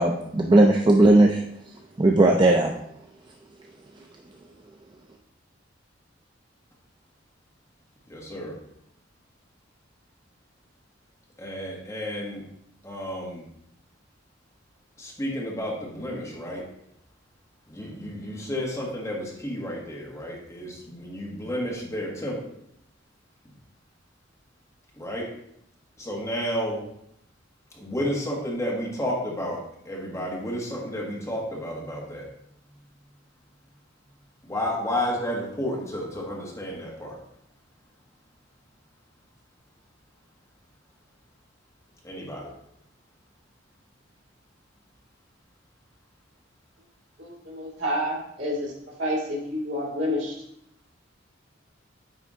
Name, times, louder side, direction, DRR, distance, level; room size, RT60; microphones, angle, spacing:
voice 1, 0.0-1.4 2.0-2.7, right 2 dB, 25° right, 2 dB, 0.4 m, -17 dB
voice 2, 8.1-8.5 11.4-12.4 12.8-13.4 15.0-16.6 17.7-22.4 25.0-25.2 26.0-26.8 27.7-29.6 29.8-32.3 34.5-37.1 42.0-42.5, equal, 15° left, -3 dB, 1.5 m, -31 dB
voice 3, 47.2-48.7 49.0-50.3, equal, 75° right, -3 dB, 2.5 m, -29 dB
9.1 x 3.5 x 3.6 m, 0.75 s
head